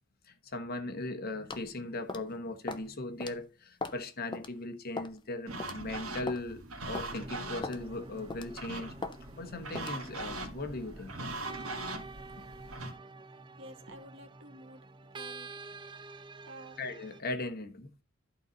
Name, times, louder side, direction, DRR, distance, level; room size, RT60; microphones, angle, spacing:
voice 1, 0.2-11.1 12.4-12.5 16.8-17.9, left 2 dB, 45° left, 1.2 m, -39 dB
sound 1, 1.5-1.7 2.1-2.3 2.7-2.9 3.2-3.3 3.8-4.0 4.3-4.5 5.0-5.2 5.6-5.8 6.3-6.4 7.0-7.1 7.6-7.8 8.3-8.6 9.0-9.2 9.8-10.0, left 3 dB, 20° left, 0.6 m, -38 dB
sound 2, 5.5-12.9, right 2 dB, 90° right, 1.7 m, -41 dB
sound 3, 7.1-17.2, right 3 dB, 25° right, 0.5 m, -48 dB
voice 2, 13.6-14.8 15.1-15.5 16.4-16.8, right 1 dB, 60° right, 1.4 m, -50 dB
11.5 x 4.0 x 5.5 m
head